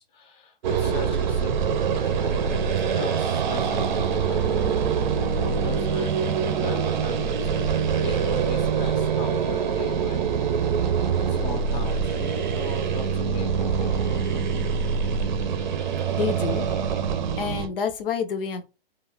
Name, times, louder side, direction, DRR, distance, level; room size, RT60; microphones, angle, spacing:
voice 1, 0.0-4.9 5.3-6.2 6.6-10.3 11.3-14.5, left 3 dB, 20° left, 0.7 m, -38 dB
sound 1, 0.6-17.7, right 6 dB, 50° right, 0.6 m, -24 dB
voice 2, 16.1-16.8 17.4-18.6, left 6 dB, 65° left, 0.7 m, -28 dB
2.5 x 2.5 x 3.1 m
hypercardioid pair, 145°, 30 cm